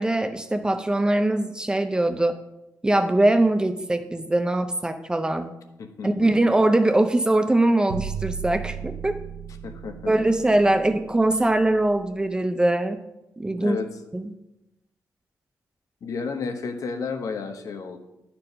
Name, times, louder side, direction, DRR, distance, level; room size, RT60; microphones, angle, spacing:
voice 1, 0.0-2.4 2.8-5.5 6.0-9.2 10.1-13.0 13.4-13.8 14.1-14.3, right 1 dB, 15° right, 7 dB, 0.5 m, -22 dB
voice 2, 5.8-6.3 9.6-10.1 13.6-13.9 16.0-18.0, left 5 dB, 60° left, 6 dB, 1.0 m, -32 dB
sound 1, 7.9-12.0, right 7 dB, 80° right, 0.7 m, -35 dB
11.5 x 4.5 x 5.3 m, 0.92 s
wide cardioid pair, 145°, 6 cm